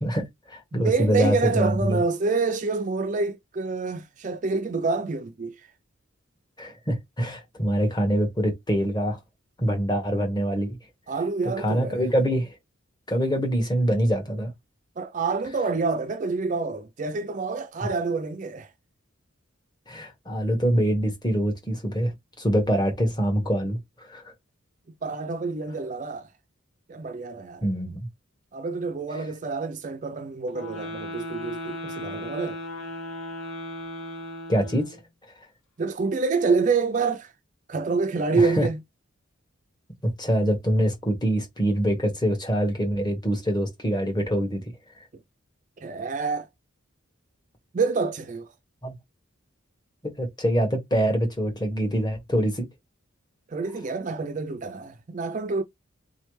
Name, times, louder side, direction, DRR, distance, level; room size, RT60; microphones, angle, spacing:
voice 1, 0.0-2.0 6.6-9.2 9.6-10.8 11.6-12.6 13.1-14.5 19.9-24.3 27.6-28.1 34.5-35.0 38.3-38.7 40.0-44.7 48.8-48.9 50.0-52.7, equal, 20° left, 1.4 m, -25 dB
voice 2, 0.7-5.6 11.1-12.0 15.0-18.7 25.0-26.3 26.9-27.7 28.5-32.6 35.8-37.3 37.7-38.8 45.8-46.5 47.7-48.5 53.5-55.6, right 4 dB, 35° right, 0.4 m, -27 dB
sound 1, 30.5-35.0, left 1 dB, 85° left, 2.6 m, -36 dB
3.7 x 3.2 x 3.1 m
head